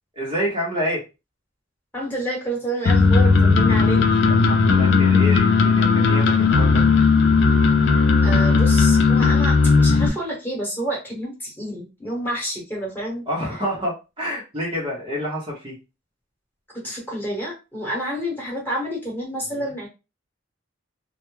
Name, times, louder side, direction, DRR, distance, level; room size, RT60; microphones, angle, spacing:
voice 1, 0.2-1.0 4.3-6.8 13.3-15.8 19.5-19.7, equal, 25° right, -4 dB, 0.7 m, -28 dB
voice 2, 1.9-4.0 8.2-13.2 16.8-19.9, right 1 dB, 10° left, -3 dB, 1.1 m, -29 dB
sound 1, 2.9-10.1, left 4 dB, 65° left, 0.4 m, -16 dB
2.1 x 2.0 x 3.0 m, 0.28 s
head